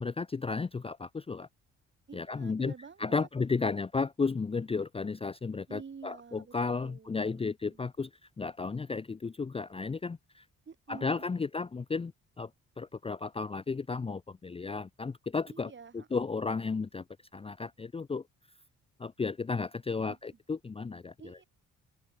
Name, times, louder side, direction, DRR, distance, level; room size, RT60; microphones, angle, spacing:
voice 1, 0.0-1.5 2.1-2.7 3.0-8.1 8.4-10.4 10.9-12.1 12.4-12.5 12.8-15.7 16.1-17.0 17.3-18.2 19.0-21.1, left 4 dB, 20° left, 0.6 m, -33 dB
voice 2, 2.1-3.3 3.6-3.8 5.7-6.5 6.8-7.8 10.7-11.5 15.5-16.2 20.1-20.4 21.2-21.4, right 6 dB, 40° right, 4.1 m, -49 dB
open air
cardioid pair, 90°, 30 cm